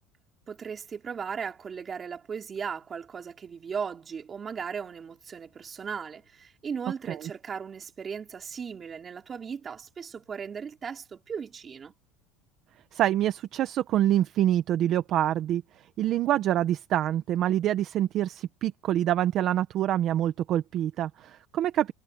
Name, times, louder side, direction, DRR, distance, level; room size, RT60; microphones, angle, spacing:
voice 1, 0.5-11.9, right 6 dB, 25° right, 4.2 m, -37 dB
voice 2, 12.9-15.6 16.0-21.9, right 12 dB, 45° right, 1.0 m, -26 dB
cardioid pair, 145°, 0 cm